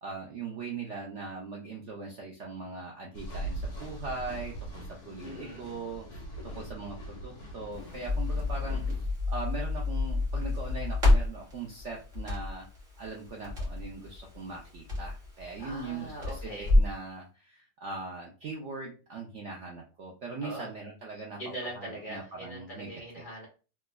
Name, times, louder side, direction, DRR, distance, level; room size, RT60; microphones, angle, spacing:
voice 1, 0.0-6.1 6.4-12.7 13.0-21.4 21.7-22.9, right 3 dB, 65° right, -1 dB, 0.7 m, -40 dB
sound 1, 3.1-9.0, right 1 dB, 50° left, 1.3 m, -41 dB
voice 2, 5.2-5.7 15.6-16.7 20.4-20.7 21.4-23.5, right 1 dB, 35° left, -3 dB, 1.2 m, -41 dB
Crackle, 7.7-17.0, left 2 dB, 30° right, 1.5 m, -29 dB
3.4 x 3.1 x 2.2 m, 0.34 s
omnidirectional pair, 1.8 m